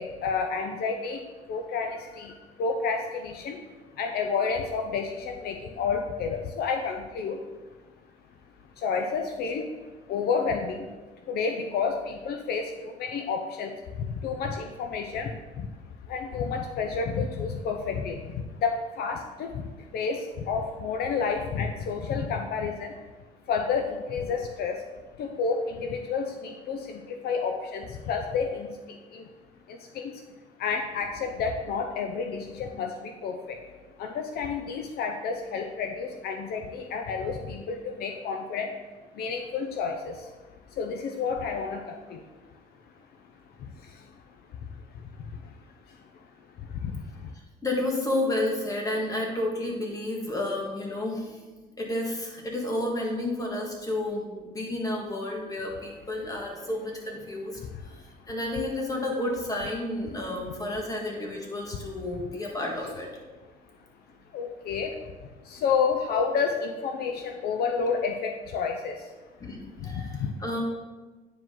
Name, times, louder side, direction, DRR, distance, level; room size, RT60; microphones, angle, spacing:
voice 1, 0.0-3.7 3.9-7.4 8.8-10.9 11.3-15.7 16.0-23.0 23.5-24.9 25.2-29.3 29.7-30.2 30.6-38.8 39.1-40.4 40.7-42.2 42.8-42.9 43.6-46.2 46.6-47.3 57.6-58.3 62.8-62.9 64.3-69.1 69.7-70.3, left 5 dB, 65° left, 4 dB, 0.6 m, -31 dB
voice 2, 47.6-51.4 51.8-57.6 58.3-63.1 69.4-70.6, left 1 dB, 20° left, 0 dB, 1.8 m, -31 dB
9.3 x 4.9 x 3.8 m, 1.2 s
cardioid pair, 110°, 17 cm